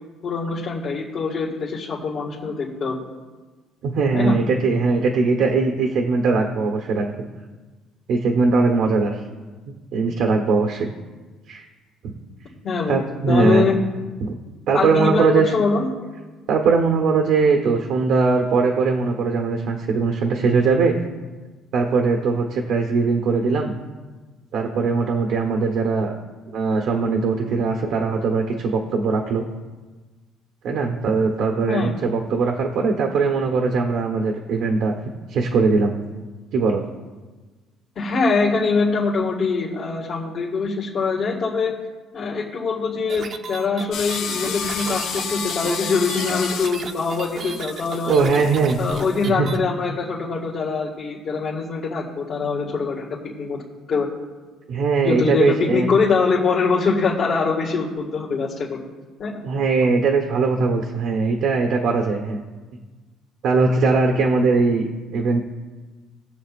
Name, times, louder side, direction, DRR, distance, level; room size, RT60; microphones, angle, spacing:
voice 1, 0.2-3.0 4.1-4.3 12.6-13.7 14.7-15.9 31.7-31.9 38.0-41.7 42.1-48.4 48.8-53.1 53.4-53.6 53.9-54.1 55.0-58.8 59.2-59.4, left 4 dB, 50° left, -5 dB, 1.9 m, -23 dB
voice 2, 3.8-7.1 8.1-9.2 9.9-10.9 11.5-11.6 12.0-12.2 12.9-13.7 14.2-14.3 14.7-15.5 16.5-21.0 21.7-23.7 24.5-26.1 26.5-29.4 30.6-34.9 35.3-35.9 36.5-36.8 48.1-48.8 49.2-49.5 54.7-55.9 59.4-62.4 63.4-65.4, right 4 dB, 70° right, 2 dB, 1.1 m, -20 dB
sound 1, 43.1-49.6, right 5 dB, 50° right, 0.9 m, -34 dB
sound 2, 43.9-49.3, left 6 dB, 75° left, 1.3 m, -31 dB
19.5 x 7.1 x 2.5 m, 1.3 s
cardioid pair, 95°, 0 cm